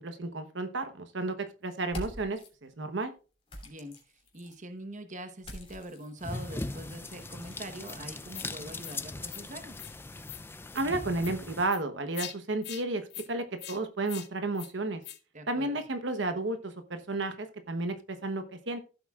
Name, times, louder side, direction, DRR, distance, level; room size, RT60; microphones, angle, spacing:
voice 1, 0.0-3.1 10.7-15.0 15.5-18.8, right 2 dB, 65° right, 8 dB, 1.1 m, -32 dB
sound 1, 1.8-2.5 3.5-4.6 5.4-7.7, equal, 30° left, 2.9 m, -45 dB
voice 2, 3.6-4.0 4.3-9.8 15.3-15.8, right 1 dB, 40° right, 8 dB, 1.1 m, -43 dB
sound 2, 6.2-11.7, left 2 dB, 10° left, 0.5 m, -40 dB
sound 3, 7.8-8.0 8.3-8.5 8.8-9.0 9.3-9.4 9.7-9.9 10.2-10.4 10.7-10.9 11.2-11.3 11.7-11.8 12.1-12.3 12.6-12.8 13.1-13.3 13.6-13.8 14.1-14.3 14.6-14.7 15.0-15.2, left 13 dB, 55° left, 0.9 m, -43 dB
15.0 x 7.8 x 2.4 m, 0.33 s
head